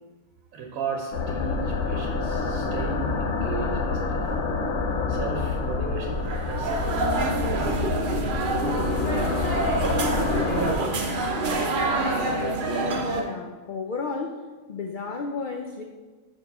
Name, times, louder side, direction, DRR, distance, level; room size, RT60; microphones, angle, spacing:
voice 1, 0.5-4.3 5.1-7.1 7.4-8.8, right 5 dB, 80° right, 1 dB, 1.1 m, -36 dB
sound 1, 1.1-10.7, left 4 dB, 70° left, 0.9 m, -28 dB
sound 2, 6.2-13.2, right 2 dB, 45° right, 0.7 m, -26 dB
voice 2, 13.1-15.8, left 4 dB, 85° left, 3 dB, 0.4 m, -33 dB
4.7 x 4.6 x 5.3 m, 1.3 s
omnidirectional pair, 1.4 m